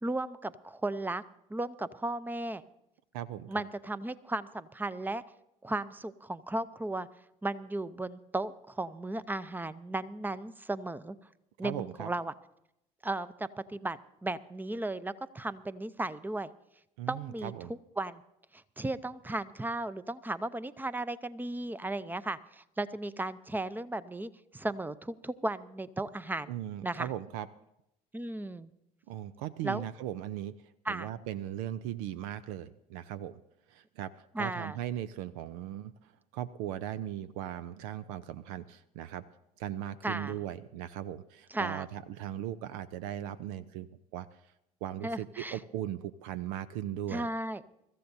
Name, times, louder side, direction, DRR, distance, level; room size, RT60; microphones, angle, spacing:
voice 1, 0.0-1.2 1.5-2.6 3.5-5.2 5.6-7.1 7.4-11.2 11.6-12.3 13.0-16.5 17.1-17.5 18.0-18.2 18.5-26.5 26.8-27.1 28.1-28.7 29.6-29.8 30.9-31.1 34.3-34.8 40.0-40.4 41.5-41.8 45.0-45.6 47.1-47.6, right 2 dB, 10° right, 16 dB, 0.6 m, -35 dB
voice 2, 3.1-3.5 11.6-12.1 17.0-17.7 26.5-27.5 29.1-30.5 30.9-33.4 33.7-34.1 34.4-39.2 39.6-44.3 44.8-47.3, right 11 dB, 70° right, 15 dB, 0.5 m, -38 dB
24.0 x 14.0 x 2.7 m, 0.82 s
hypercardioid pair, 65°, 19 cm